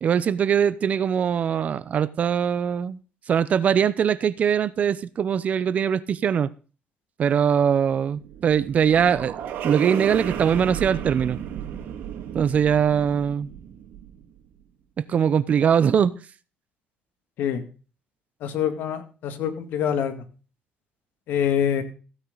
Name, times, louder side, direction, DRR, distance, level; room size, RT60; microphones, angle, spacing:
voice 1, 0.0-3.0 3.3-6.5 7.2-9.3 9.6-11.4 12.3-13.5 15.0-16.1, right 8 dB, 45° right, 0.7 m, -22 dB
sound 1, 8.1-14.4, right 9 dB, 80° right, 2.1 m, -34 dB
voice 2, 18.4-20.1 21.3-21.8, left 9 dB, 80° left, 2.2 m, -25 dB
16.0 x 9.1 x 4.0 m
cardioid pair, 125°, 3 cm